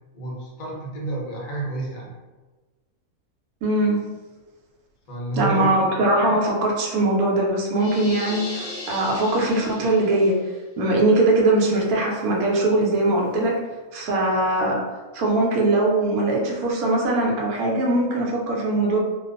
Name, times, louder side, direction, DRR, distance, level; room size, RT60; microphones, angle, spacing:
voice 1, 0.1-2.1 5.1-5.7, right 2 dB, 65° left, -3 dB, 0.4 m, -29 dB
voice 2, 3.6-4.0 5.4-10.4 10.8-13.6 13.9-14.8 15.1-19.0, right 2 dB, 85° right, -1 dB, 1.1 m, -21 dB
sound 1, 7.8-10.3, left 2 dB, 5° left, 0.7 m, -36 dB
sound 2, 11.6-13.7, left 9 dB, 55° right, 0.5 m, -42 dB
2.4 x 2.2 x 2.4 m, 1.2 s
omnidirectional pair, 1.6 m